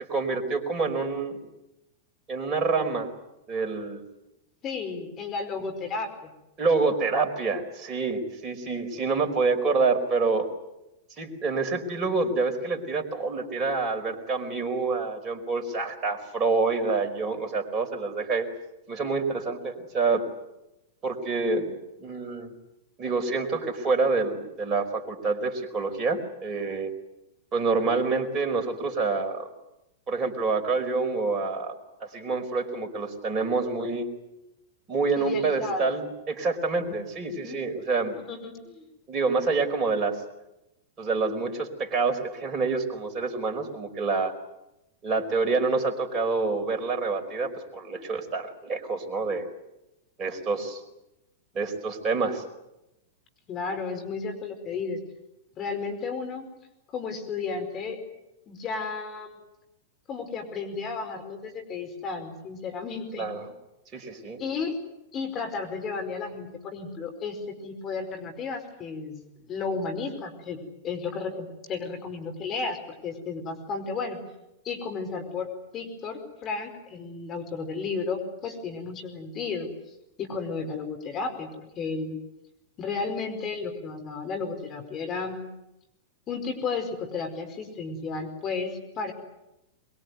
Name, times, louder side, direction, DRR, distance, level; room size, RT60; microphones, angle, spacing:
voice 1, 0.0-1.5 2.3-3.1 3.5-4.0 6.6-10.5 11.2-18.5 18.9-20.2 21.0-21.7 22.0-22.5 23.0-26.9 27.5-29.5 30.1-34.1 34.9-38.2 39.1-40.2 41.0-44.3 45.0-49.5 50.2-50.8 51.5-52.4 63.2-63.5 63.9-64.4, right 4 dB, 30° right, 4 dB, 4.8 m, -27 dB
voice 2, 4.6-6.3 35.2-35.9 36.8-36.9 37.3-37.6 38.2-38.8 53.5-55.0 55.6-56.5 56.9-58.0 58.5-59.4 60.1-63.3 64.4-64.8 65.1-69.2 69.5-72.8 73.0-74.2 74.6-79.7 80.2-82.2 82.8-85.4 86.3-89.1, left 4 dB, 30° left, 5 dB, 4.9 m, -33 dB
23.0 x 22.5 x 9.6 m, 0.91 s
hypercardioid pair, 100°, 0 cm